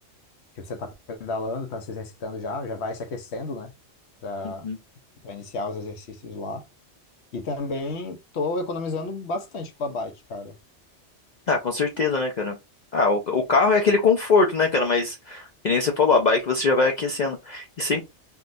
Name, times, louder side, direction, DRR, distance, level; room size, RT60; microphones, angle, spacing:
voice 1, 0.6-3.7 4.2-4.7 5.2-6.6 7.3-10.6, left 3 dB, 70° left, 1.0 m, -32 dB
voice 2, 4.4-4.8 11.5-12.6 12.9-18.0, left 4 dB, 55° left, 0.5 m, -22 dB
3.6 x 2.3 x 2.5 m
omnidirectional pair, 1.2 m